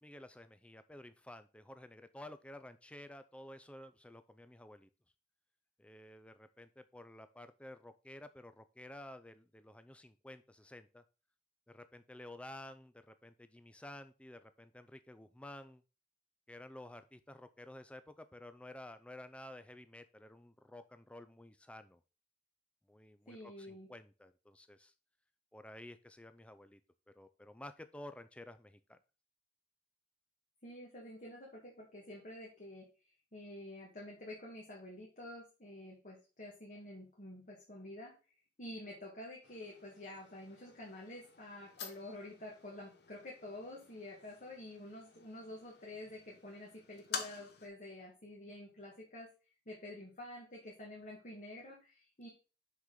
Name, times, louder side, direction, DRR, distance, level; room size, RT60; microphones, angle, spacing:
voice 1, 0.0-4.9 5.8-11.0 11.7-15.8 16.5-22.0 22.9-24.9 25.5-26.8 27.1-29.0, left 1 dB, 5° left, 11 dB, 0.4 m, -52 dB
voice 2, 23.3-23.9 30.6-32.9 33.3-38.1 38.6-49.3 49.6-52.3, left 1 dB, 45° left, -3 dB, 1.6 m, -49 dB
sound 1, 39.4-47.7, left 6 dB, 60° left, 0.9 m, -50 dB
5.9 x 5.8 x 3.8 m, 0.33 s
head